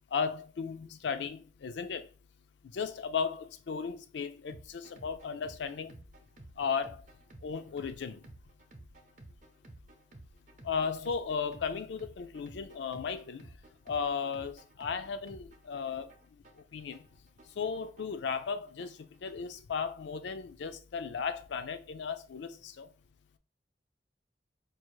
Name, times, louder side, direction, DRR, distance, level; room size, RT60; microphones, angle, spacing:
voice 1, 0.1-2.1 2.7-5.9 6.6-7.0 7.4-8.2 10.6-13.4 13.9-16.1 16.7-17.0 17.6-19.0 19.2-22.9, left 6 dB, 70° left, 0.4 m, -35 dB
sound 1, 4.5-19.5, right 1 dB, 40° right, 0.6 m, -54 dB
4.6 x 2.4 x 3.1 m
head